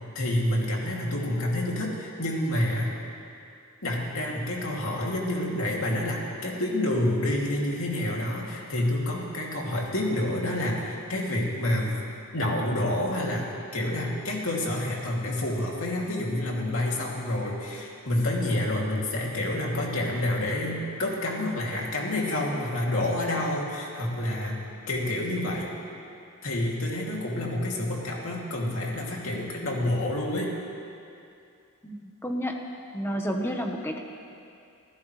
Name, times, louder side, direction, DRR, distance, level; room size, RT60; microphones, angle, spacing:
voice 1, 0.1-2.9 3.8-12.0 12.3-13.5 13.7-25.7 26.4-30.5, left 1 dB, 75° left, -3 dB, 2.7 m, -28 dB
voice 2, 31.8-32.6 32.9-34.0, equal, 10° left, 2 dB, 1.1 m, -30 dB
27.0 x 15.5 x 3.3 m, 2.6 s
head